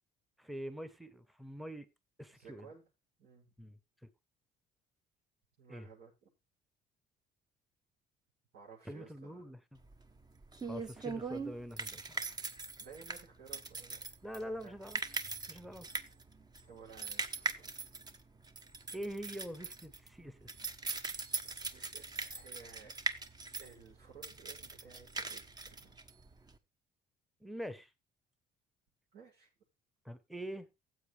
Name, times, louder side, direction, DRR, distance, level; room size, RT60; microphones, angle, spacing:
voice 1, 0.4-1.9 2.2-2.7 3.6-3.8 5.7-5.9 8.9-9.8 10.6-12.2 14.2-15.0 15.5-15.9 18.9-20.5 27.4-27.9 30.0-30.7, equal, ahead, 1.0 m, -44 dB
voice 2, 2.3-2.8 3.2-3.5 5.6-6.3 8.5-9.6 12.8-14.1 14.4-14.8 16.7-17.9 21.4-22.9 23.6-26.0 29.1-29.5, right 6 dB, 75° right, 6.7 m, -56 dB
sound 1, 9.8-26.6, right 3 dB, 25° right, 1.1 m, -41 dB
15.5 x 7.8 x 3.4 m
cardioid pair, 110°, 17 cm